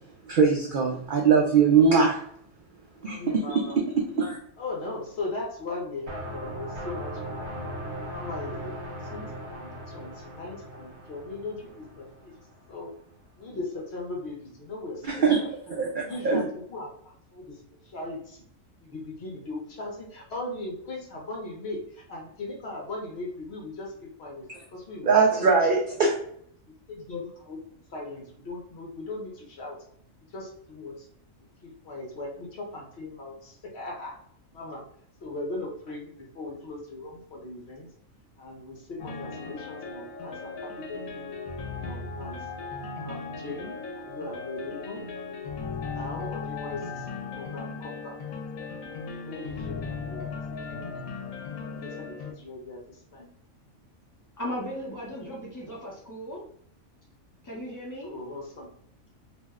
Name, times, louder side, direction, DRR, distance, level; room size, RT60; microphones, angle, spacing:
voice 1, 0.3-2.2 3.0-4.4 15.1-15.4 15.8-16.4 25.0-26.1, right 5 dB, 75° right, 0 dB, 0.4 m, -22 dB
voice 2, 3.0-3.8 4.6-7.6 8.1-12.3 12.7-13.0 13.4-15.5 16.0-18.4 18.8-25.6 26.7-29.8 30.3-31.1 31.6-34.2 34.5-34.8 35.2-37.9 38.4-41.3 41.7-42.5 43.0-45.1 45.8-47.1 47.3-48.2 49.1-51.1 51.7-53.3 58.0-58.7, left 2 dB, 55° left, -1 dB, 0.9 m, -39 dB
sound 1, 6.1-12.8, equal, 55° right, 1.1 m, -38 dB
sound 2, 39.0-52.3, left 4 dB, 85° left, 1.0 m, -37 dB
voice 3, 54.4-56.4 57.4-58.1, equal, 20° left, -4 dB, 0.6 m, -36 dB
2.6 x 2.1 x 3.4 m, 0.66 s
omnidirectional pair, 1.4 m